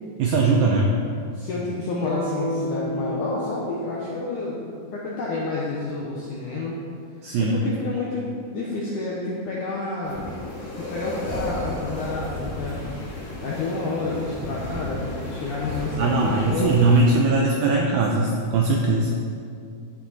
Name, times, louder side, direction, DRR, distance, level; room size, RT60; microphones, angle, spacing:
voice 1, 0.2-1.0 7.2-7.6 16.0-19.1, right 3 dB, 85° right, 0 dB, 2.1 m, -20 dB
voice 2, 1.3-4.6 4.9-6.8 7.4-10.3 10.8-12.8 13.4-16.7, left 3 dB, 75° left, -4 dB, 1.8 m, -29 dB
sound 1, 2.0-6.1, left 1 dB, 55° left, 2.5 m, -33 dB
sound 2, 10.0-17.1, left 1 dB, 40° left, 2.8 m, -33 dB
12.0 x 9.0 x 4.2 m, 2.3 s
omnidirectional pair, 5.2 m